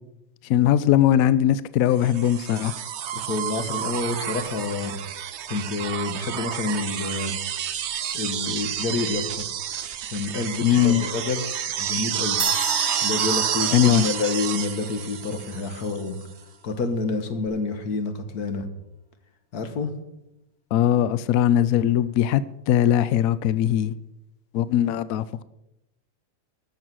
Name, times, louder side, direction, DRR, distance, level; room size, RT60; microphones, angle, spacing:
voice 1, 0.5-2.7 10.6-11.0 13.7-14.0 20.7-23.9 24.5-25.4, left 11 dB, 75° left, 0.7 m, -20 dB
sound 1, 2.0-16.0 17.5-17.6, right 9 dB, 70° right, 0.6 m, -29 dB
voice 2, 3.1-5.0 5.5-7.4 8.1-9.5 10.1-11.4 11.8-12.4 13.0-16.2 16.6-18.7 19.5-19.9, left 3 dB, 60° left, 1.7 m, -28 dB
sound 2, 12.4-15.6, right 2 dB, 20° right, 0.6 m, -33 dB
13.5 x 7.1 x 6.2 m
omnidirectional pair, 1.9 m